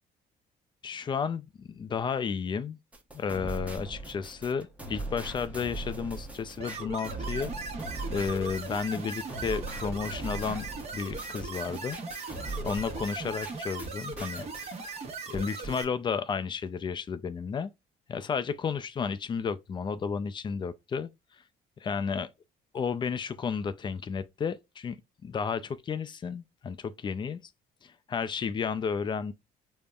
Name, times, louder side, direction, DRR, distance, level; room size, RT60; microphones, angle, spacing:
voice 1, 0.8-2.8 3.1-7.5 8.1-12.0 12.6-14.5 14.8-15.0 15.3-17.7 18.1-21.1 21.8-22.3 22.7-25.0 25.2-27.4 27.8-29.3, left 6 dB, 30° left, 0.4 m, -32 dB
sound 1, 2.9-13.9 14.2-14.8, right 2 dB, 10° right, 0.8 m, -40 dB
sound 2, 6.6-15.8, right 4 dB, 40° right, 1.0 m, -38 dB
5.1 x 2.1 x 2.3 m
cardioid pair, 110°, 17 cm